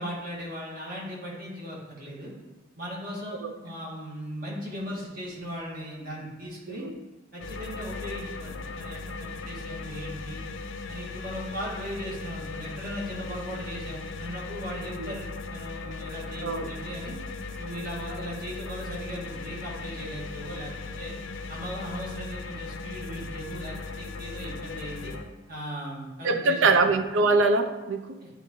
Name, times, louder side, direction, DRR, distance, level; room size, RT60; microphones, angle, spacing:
voice 1, 0.0-2.3 2.8-6.9 7.3-10.4 10.9-17.2 17.6-20.7 21.0-21.1 21.5-25.1 25.5-26.8 28.2-28.3, equal, 50° right, -4 dB, 1.7 m, -38 dB
sound 1, 7.4-25.2, left 3 dB, 85° left, 0.5 m, -38 dB
voice 2, 26.2-28.2, right 3 dB, 80° right, 8 dB, 0.5 m, -23 dB
9.9 x 3.5 x 3.0 m, 1.1 s
head